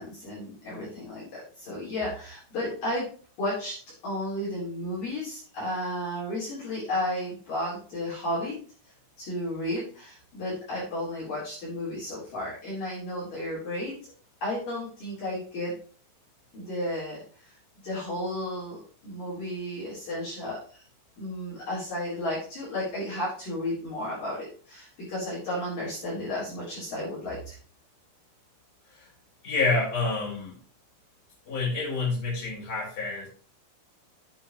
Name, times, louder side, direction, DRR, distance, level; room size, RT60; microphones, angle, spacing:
voice 1, 0.0-3.1 3.4-3.8 4.0-8.6 9.2-14.0 14.4-15.8 16.5-17.2 17.8-20.8 21.2-27.6, left 1 dB, 45° left, -7 dB, 5.1 m, -33 dB
voice 2, 29.4-30.6 31.5-33.3, left 3 dB, 20° left, -5 dB, 5.4 m, -28 dB
11.0 x 8.2 x 3.2 m, 0.40 s
omnidirectional pair, 5.5 m